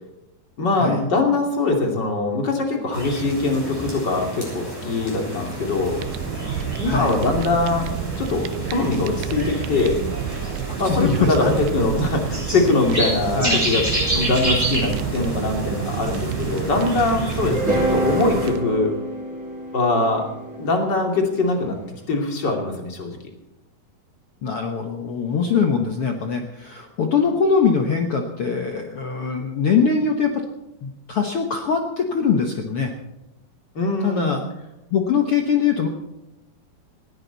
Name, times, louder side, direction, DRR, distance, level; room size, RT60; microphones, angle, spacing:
voice 1, 0.6-6.0 6.8-7.9 8.2-10.0 10.8-18.9 19.7-20.3 20.6-21.8 22.1-23.2 33.7-34.4, left 3 dB, 30° left, 2 dB, 2.8 m, -22 dB
sound 1, 2.9-18.5, right 1 dB, 5° left, 7.4 m, -30 dB
Fire, 5.3-18.9, right 10 dB, 85° right, 2.7 m, -30 dB
voice 2, 6.8-7.2 10.7-11.5 13.3-13.6 24.4-30.4 30.8-32.9 34.0-34.4 34.9-35.9, left 6 dB, 75° left, 3 dB, 1.3 m, -22 dB
sound 2, 17.5-21.7, right 1 dB, 25° right, 6.6 m, -27 dB
19.5 x 16.5 x 4.1 m, 0.94 s
omnidirectional pair, 4.5 m